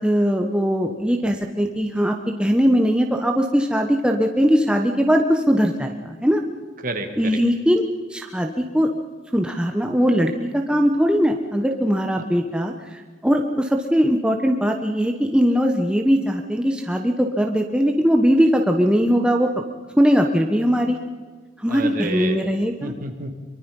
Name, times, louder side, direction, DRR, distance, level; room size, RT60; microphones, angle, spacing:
voice 1, 0.0-6.4 7.2-7.8 8.1-8.9 9.3-19.5 20.0-21.0 21.6-22.9, equal, 5° right, 2 dB, 1.1 m, -20 dB
voice 2, 6.8-7.4 21.7-22.5 22.8-23.3, right 2 dB, 45° right, 5 dB, 2.5 m, -29 dB
24.0 x 23.5 x 5.5 m, 1.5 s
head